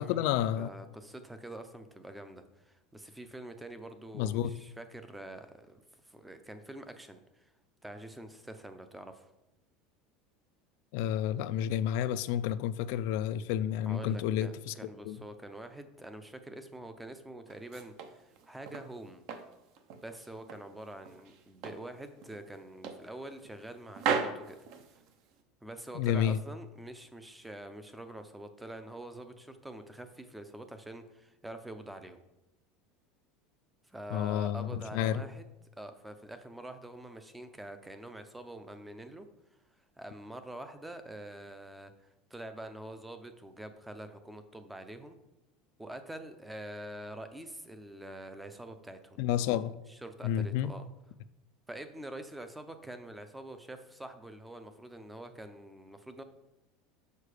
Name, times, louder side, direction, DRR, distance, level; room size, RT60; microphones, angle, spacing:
voice 1, 0.0-0.7 4.1-4.5 10.9-15.2 25.9-26.4 34.1-35.2 49.2-49.7 50.2-50.7, left 10 dB, 65° left, 0.3 m, -30 dB
voice 2, 0.5-7.5 7.8-9.3 13.9-19.2 20.0-24.6 25.6-32.2 33.8-35.5 35.8-39.3 39.8-45.2 45.8-49.2 49.9-50.9 51.7-56.2, right 1 dB, 5° right, 0.5 m, -46 dB
sound 1, 17.5-18.9 19.3-20.7 21.0-21.9 22.2-22.4 22.8-23.7 23.9-25.4, right 6 dB, 50° right, 0.7 m, -36 dB
6.6 x 5.0 x 4.9 m
cardioid pair, 165°, 0 cm